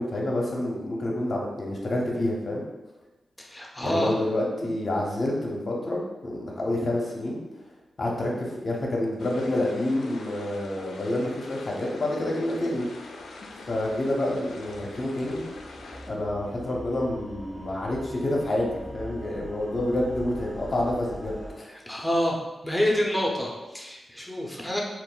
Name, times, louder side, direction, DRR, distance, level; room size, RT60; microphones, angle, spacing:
voice 1, 0.0-2.6 3.8-7.4 8.0-12.9 13.7-15.4 16.1-21.7, left 1 dB, 55° left, -2 dB, 0.6 m, -28 dB
voice 2, 3.4-4.1 21.9-22.4 22.6-24.8, left 1 dB, 10° left, -2 dB, 0.6 m, -27 dB
sound 1, 9.2-16.1, left 3 dB, 85° left, 0.3 m, -45 dB
sound 2, 12.5-21.6, equal, 35° right, 0.6 m, -44 dB
2.3 x 2.1 x 3.7 m, 1.1 s
supercardioid pair, 45°, 0 cm